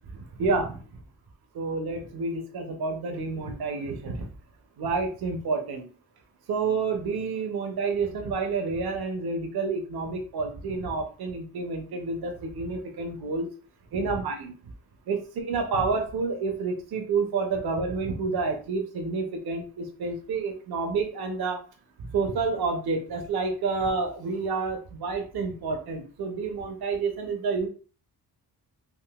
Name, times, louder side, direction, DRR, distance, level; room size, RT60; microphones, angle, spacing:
voice 1, 0.4-0.8 1.5-4.2 4.8-5.9 6.5-13.5 13.9-14.5 15.1-21.6 22.1-27.7, right 4 dB, 70° right, 4 dB, 0.7 m, -29 dB
3.6 x 2.5 x 2.3 m, 0.39 s
cardioid pair, 85°, 40 cm